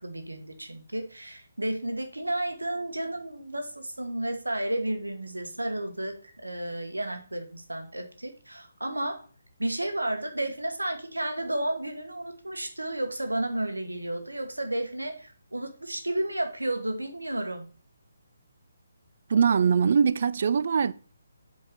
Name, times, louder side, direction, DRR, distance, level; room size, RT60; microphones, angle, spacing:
voice 1, 0.0-9.2 9.6-17.7, right 1 dB, 80° right, 1.3 m, -32 dB
voice 2, 19.3-20.9, right 6 dB, 45° right, 0.3 m, -22 dB
5.7 x 4.6 x 5.1 m
figure-of-eight pair, 140°, 0 cm